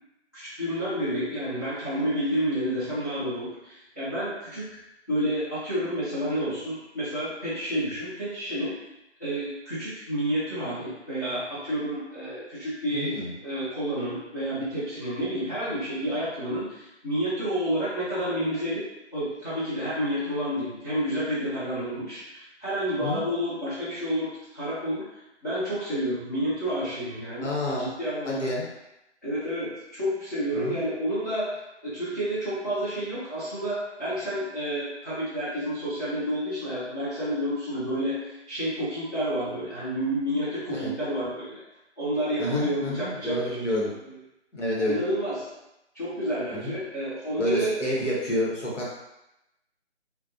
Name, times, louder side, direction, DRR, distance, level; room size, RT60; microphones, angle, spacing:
voice 1, 0.3-4.7 5.1-8.7 9.2-18.8 19.1-28.5 29.2-31.6 31.8-41.6 42.0-43.4 44.8-45.4 45.9-47.8, equal, 15° left, -14 dB, 0.6 m, -30 dB
voice 2, 12.9-13.3 23.0-23.2 27.4-27.9 28.2-28.6 30.5-30.8 40.7-40.9 42.4-43.9 44.5-45.0 46.5-46.7 47.4-48.9, left 1 dB, 90° left, -4 dB, 1.0 m, -29 dB
2.3 x 2.2 x 2.5 m, 0.91 s
figure-of-eight pair, 160°, 35 cm